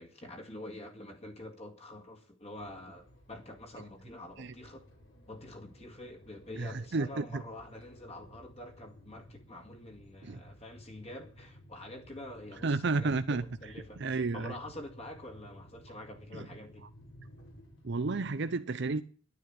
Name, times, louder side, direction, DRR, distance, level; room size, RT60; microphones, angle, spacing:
voice 1, 0.0-4.9 5.3-16.9, left 1 dB, 30° left, 2.0 m, -47 dB
sound 1, 2.5-18.3, equal, 80° left, 5.2 m, -56 dB
voice 2, 6.6-7.4 10.2-10.4 12.6-14.5 16.3-16.5 17.8-19.0, right 3 dB, 60° right, 0.6 m, -32 dB
11.5 x 9.4 x 8.8 m
head